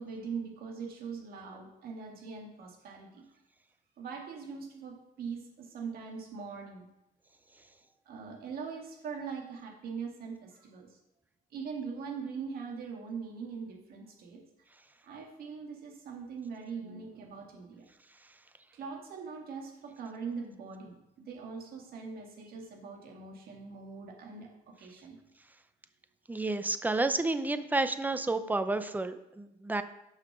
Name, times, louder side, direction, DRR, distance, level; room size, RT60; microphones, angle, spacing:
voice 1, 0.0-3.2 4.0-6.9 8.1-11.0 11.5-14.4 15.0-17.9 18.7-25.2, right 5 dB, 65° right, 0 dB, 1.9 m, -42 dB
voice 2, 26.3-29.8, right 2 dB, 10° right, 11 dB, 0.6 m, -30 dB
6.8 x 5.7 x 6.0 m, 0.89 s
cardioid pair, 110°, 17 cm